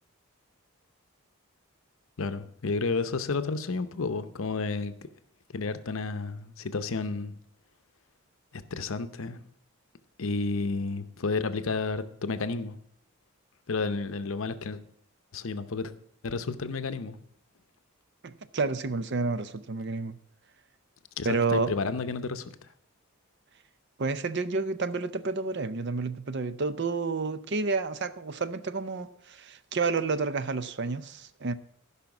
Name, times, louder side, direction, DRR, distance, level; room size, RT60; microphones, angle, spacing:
voice 1, 2.2-4.9 5.5-7.4 8.5-9.4 10.2-12.8 13.7-14.8 15.3-15.9 16.2-17.2 21.2-22.5, left 4 dB, 70° left, 0.7 m, -31 dB
voice 2, 18.2-20.2 21.2-21.7 24.0-31.5, right 4 dB, 55° right, 0.6 m, -30 dB
14.5 x 5.7 x 5.9 m
head